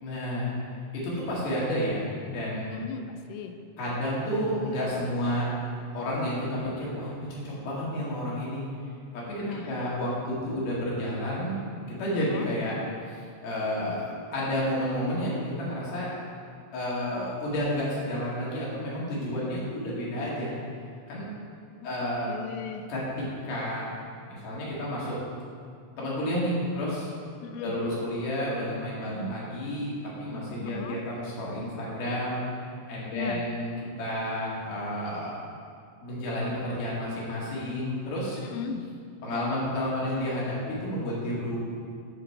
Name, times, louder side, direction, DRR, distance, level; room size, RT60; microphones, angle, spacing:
voice 1, 0.0-0.5 0.9-2.7 3.8-5.5 5.9-8.6 9.1-11.6 11.9-12.7 13.1-16.1 16.7-20.6 21.1-21.3 21.8-22.3 22.9-23.9 24.2-25.2 26.0-27.1 27.6-29.9 30.2-32.4 32.9-33.7 34.0-35.4 36.0-38.4 39.2-41.6, equal, 55° left, -6 dB, 3.4 m, -31 dB
voice 2, 2.7-3.6 9.4-10.1 12.2-12.5 19.3-19.5 21.8-22.9 27.4-27.8 30.6-31.0 33.1-33.5 38.4-38.9, left 6 dB, 85° left, 5 dB, 3.1 m, -37 dB
13.5 x 6.4 x 3.4 m, 2.2 s
omnidirectional pair, 5.7 m